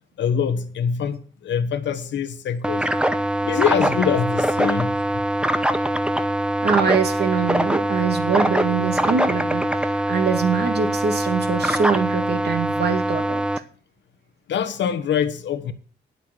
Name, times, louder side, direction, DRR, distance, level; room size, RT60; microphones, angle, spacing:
voice 1, 0.2-2.9 3.5-5.2 14.5-15.7, left 7 dB, 65° left, 1.4 m, -24 dB
sound 1, 2.6-13.6, right 1 dB, 5° right, 0.9 m, -23 dB
voice 2, 6.6-13.4, right 6 dB, 55° right, 2.1 m, -23 dB
9.4 x 8.2 x 7.5 m
cardioid pair, 90°, 20 cm